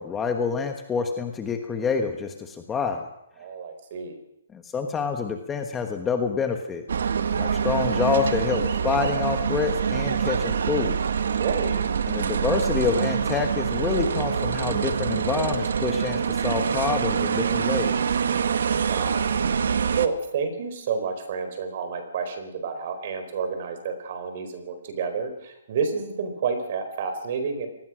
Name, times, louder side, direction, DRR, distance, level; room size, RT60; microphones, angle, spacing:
voice 1, 0.0-3.1 4.5-6.8 7.4-11.0 12.1-18.0, left 5 dB, 10° left, 5 dB, 1.3 m, -27 dB
voice 2, 3.4-4.2 11.3-11.8 18.9-19.3 20.0-27.7, right 5 dB, 40° right, 8 dB, 4.5 m, -29 dB
sound 1, 6.9-20.1, right 7 dB, 70° right, 1.6 m, -25 dB
25.0 x 19.5 x 6.3 m, 0.81 s
hypercardioid pair, 170°, 0 cm